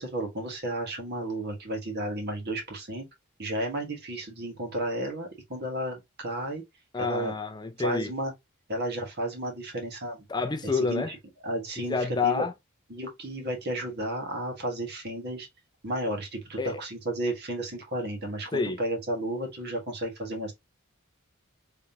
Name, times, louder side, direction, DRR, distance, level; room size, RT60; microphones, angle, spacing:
voice 1, 0.0-3.1 3.4-6.6 7.0-7.3 7.8-8.3 8.7-10.2 10.7-11.2 11.4-12.5 12.9-15.5 15.8-20.5, right 1 dB, 50° right, 1.6 m, -33 dB
voice 2, 6.9-8.1 10.3-11.1 11.8-12.5 16.6-16.8 18.5-18.8, left 4 dB, 20° left, 0.4 m, -28 dB
3.6 x 3.2 x 2.8 m
head